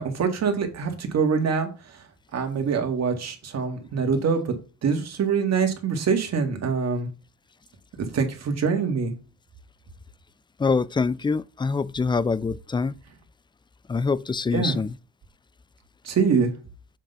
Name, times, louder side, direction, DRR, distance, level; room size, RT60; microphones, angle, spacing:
voice 1, 0.0-2.0 2.3-4.5 4.8-7.1 8.1-9.1 14.5-14.8 16.0-16.5, right 5 dB, 60° right, 2.0 m, -24 dB
voice 2, 10.6-12.9 13.9-15.0, left 4 dB, 15° left, 0.4 m, -25 dB
7.4 x 3.8 x 5.4 m
cardioid pair, 90°, 30 cm